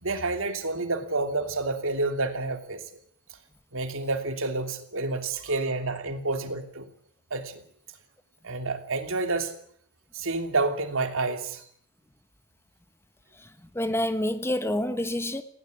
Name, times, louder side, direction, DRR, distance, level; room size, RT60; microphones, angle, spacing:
voice 1, 0.0-2.8 3.7-6.9 7.3-7.6 8.4-9.5 10.1-11.7, right 3 dB, 65° right, 3.0 m, -29 dB
voice 2, 13.7-15.4, left 1 dB, 10° left, 1.2 m, -27 dB
19.0 x 17.0 x 9.5 m
head